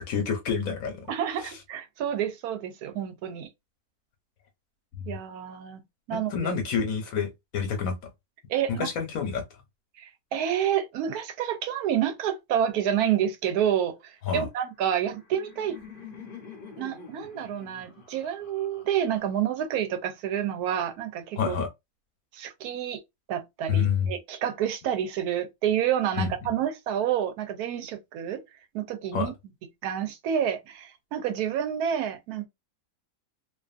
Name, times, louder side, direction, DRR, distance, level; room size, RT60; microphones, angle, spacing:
voice 1, 0.0-1.0 4.9-5.2 6.1-7.9 8.7-9.4 14.3-14.5 21.4-21.7 23.7-24.1 26.2-26.5 29.1-29.3, left 6 dB, 70° left, 1.2 m, -28 dB
voice 2, 1.1-3.5 5.1-5.8 6.1-6.5 8.5-8.9 10.0-15.8 16.8-21.5 22.3-23.0 23.3-28.4 28.7-29.3 29.8-32.5, right 9 dB, 90° right, 1.1 m, -29 dB
Laughter, 14.8-19.8, left 5 dB, 45° left, 0.8 m, -47 dB
2.6 x 2.4 x 2.4 m
omnidirectional pair, 1.6 m